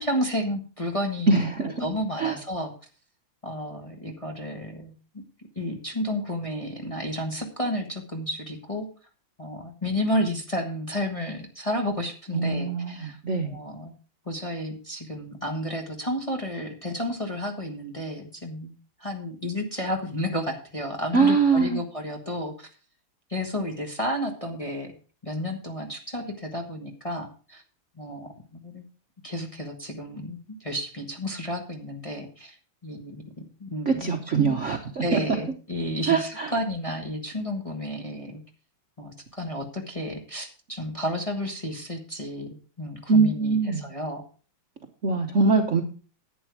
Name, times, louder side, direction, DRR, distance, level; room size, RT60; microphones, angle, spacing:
voice 1, 0.0-1.4 1.6-2.7 3.4-4.9 5.5-8.9 9.4-13.2 13.5-13.9 14.3-18.7 19.0-22.7 23.3-24.9 25.2-27.6 28.0-28.8 29.2-32.5 32.8-33.2 33.6-34.6 35.0-38.4 39.0-44.2, equal, 20° left, 2 dB, 1.2 m, -31 dB
voice 2, 1.3-1.8 2.2-2.4 12.3-13.6 21.1-21.8 33.9-35.2 36.1-36.5 43.1-43.8 45.0-45.8, right 4 dB, 45° right, 3 dB, 1.0 m, -23 dB
11.0 x 9.0 x 4.6 m, 0.37 s
omnidirectional pair, 2.3 m